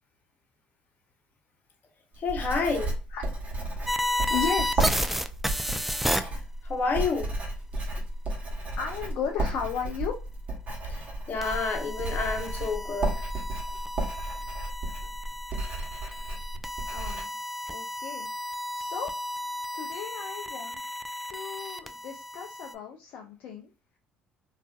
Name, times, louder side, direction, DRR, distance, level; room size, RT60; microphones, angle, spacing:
Writing, 2.1-17.2, right 1 dB, 40° right, 1.0 m, -33 dB
voice 1, 2.2-2.9 6.2-6.3 6.6-7.3 10.9-11.0 11.3-13.1, left 4 dB, 50° left, 3 dB, 0.8 m, -29 dB
sound 1, 3.9-6.2 11.4-22.7, equal, 5° right, 0.3 m, -33 dB
voice 2, 4.3-4.8 7.7-8.0 8.7-10.1 16.9-17.3 17.7-19.1 19.7-20.8 21.3-23.7, left 7 dB, 65° left, 2 dB, 0.4 m, -35 dB
2.4 x 2.4 x 2.3 m, 0.34 s
hypercardioid pair, 60°, 4 cm